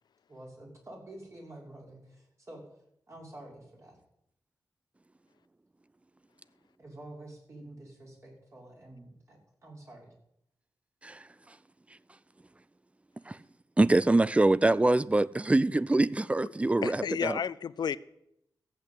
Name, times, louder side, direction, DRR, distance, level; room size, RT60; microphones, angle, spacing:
voice 1, 0.3-2.7 3.1-4.0 6.8-10.1, right 1 dB, 40° right, 6.0 m, -48 dB
voice 2, 13.8-17.4, right 2 dB, 15° right, 0.5 m, -24 dB
voice 3, 16.8-18.0, left 7 dB, 75° left, 0.6 m, -32 dB
15.0 x 8.1 x 8.6 m
wide cardioid pair, 90°, 7 cm